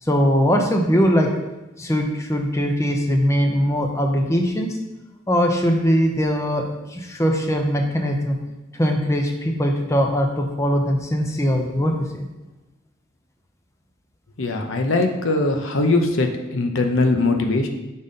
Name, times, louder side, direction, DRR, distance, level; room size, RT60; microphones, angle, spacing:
voice 1, 0.0-1.3 1.8-4.8 5.3-6.6 6.9-8.4 8.7-12.3, equal, 15° left, 3 dB, 0.6 m, -21 dB
voice 2, 14.4-17.7, left 2 dB, 85° left, 4 dB, 0.7 m, -21 dB
5.5 x 4.1 x 5.0 m, 1.0 s
head